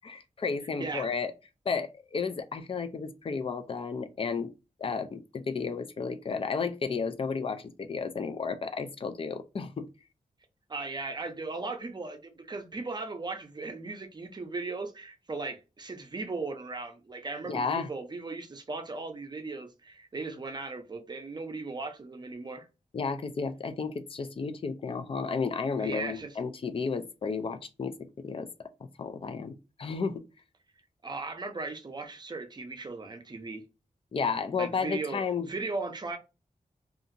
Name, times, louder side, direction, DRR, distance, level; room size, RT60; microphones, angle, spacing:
voice 1, 0.0-1.3 1.7-4.5 4.8-9.9 17.5-17.9 22.9-28.5 29.0-30.2 34.1-35.5, left 5 dB, 40° left, 0.4 m, -32 dB
voice 2, 10.7-22.7 25.8-26.3 31.0-33.6 34.5-36.2, right 3 dB, 30° right, 0.5 m, -37 dB
2.7 x 2.4 x 2.6 m
wide cardioid pair, 140°, 14 cm